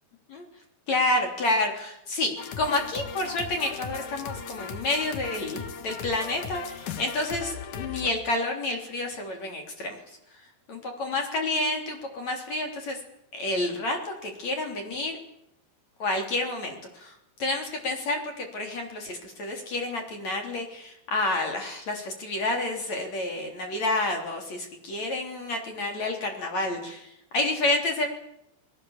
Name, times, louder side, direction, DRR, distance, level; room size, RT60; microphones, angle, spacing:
voice 1, 0.9-10.0 10.7-13.0 13.3-15.2 16.0-17.1 17.4-28.1, left 2 dB, 40° left, 3 dB, 4.4 m, -29 dB
sound 1, 2.4-8.1, left 7 dB, 60° left, 2.5 m, -38 dB
28.5 x 21.0 x 7.3 m, 0.79 s
omnidirectional pair, 5.0 m